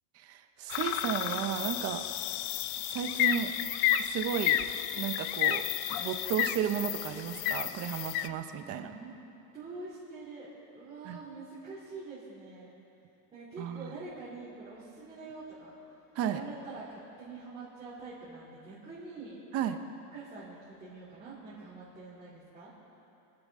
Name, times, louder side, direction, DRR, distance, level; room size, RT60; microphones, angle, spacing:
voice 1, 0.1-2.0 2.8-3.5 4.0-4.6 4.9-5.6 6.0-8.9 11.0-11.2 13.6-13.9 16.1-16.4 19.5-19.8, right 9 dB, 35° right, 8 dB, 0.7 m, -33 dB
sound 1, 0.7-8.3, left 11 dB, 50° left, 0.5 m, -31 dB
voice 2, 8.6-9.1 9.5-12.7 13.3-15.7 16.3-19.4 20.1-22.7, right 3 dB, 15° right, -11 dB, 3.0 m, -45 dB
25.5 x 11.0 x 3.6 m, 2.8 s
cardioid pair, 180°, 41 cm